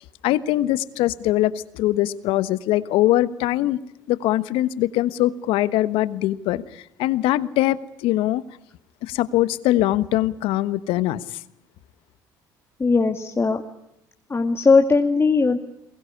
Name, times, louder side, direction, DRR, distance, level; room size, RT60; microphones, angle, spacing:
voice 1, 0.0-3.8 4.1-8.4 9.0-11.4, left 15 dB, 70° left, 1.3 m, -22 dB
voice 2, 12.8-13.6 14.3-15.6, left 4 dB, 25° left, 2.4 m, -18 dB
23.0 x 21.0 x 9.9 m
hypercardioid pair, 65°, 10 cm